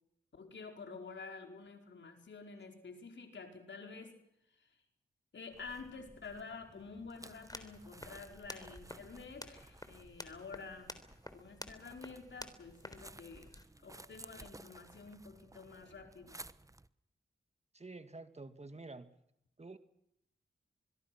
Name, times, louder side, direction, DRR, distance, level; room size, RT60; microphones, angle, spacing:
voice 1, 0.3-4.1 4.6-4.7 5.3-10.9 11.3-13.5 13.8-16.4, left 4 dB, 70° left, 4 dB, 4.7 m, -49 dB
sound 1, 5.5-16.9, right 2 dB, 15° right, 1.0 m, -56 dB
sound 2, 7.3-13.6, left 1 dB, 20° left, 3.6 m, -51 dB
voice 2, 17.7-19.1 19.6-19.8, right 3 dB, 35° right, 10 dB, 2.1 m, -49 dB
25.0 x 21.5 x 6.1 m, 0.78 s
cardioid pair, 50°, 20 cm